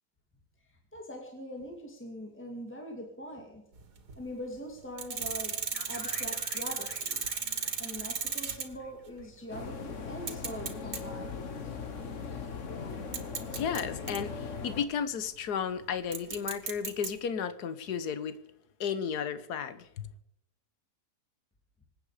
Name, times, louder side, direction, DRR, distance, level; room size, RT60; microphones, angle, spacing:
voice 1, 0.6-3.6 4.2-5.5 5.9-7.2 7.8-11.5, equal, 5° left, 2.3 m, -42 dB
sound 1, 3.8-4.2 5.0-8.9 9.2-9.3 10.1-11.1 11.5-11.8 12.6-12.7 13.1-14.2 16.1-17.1, right 6 dB, 75° right, 2.3 m, -35 dB
sound 2, 5.7-9.6, left 2 dB, 25° left, 1.4 m, -50 dB
sound 3, 9.5-14.8, left 5 dB, 50° left, 1.6 m, -39 dB
voice 2, 13.5-18.4 18.8-20.1, left 7 dB, 80° left, 1.6 m, -33 dB
26.5 x 9.0 x 4.9 m
omnidirectional pair, 1.7 m